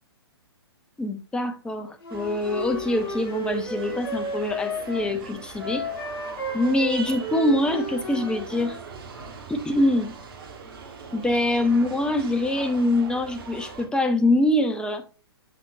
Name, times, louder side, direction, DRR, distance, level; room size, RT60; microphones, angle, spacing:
voice 1, 1.0-5.9 6.5-8.8 9.5-10.1 11.1-15.0, left 1 dB, 5° left, 0.7 m, -24 dB
Wind instrument woodwind instrument, 2.0-5.1 5.6-8.8, equal, 55° left, 2.7 m, -33 dB
sound 1, 2.1-13.9, right 5 dB, 55° right, 1.5 m, -41 dB
7.6 x 6.0 x 2.6 m
figure-of-eight pair, 120°, 14 cm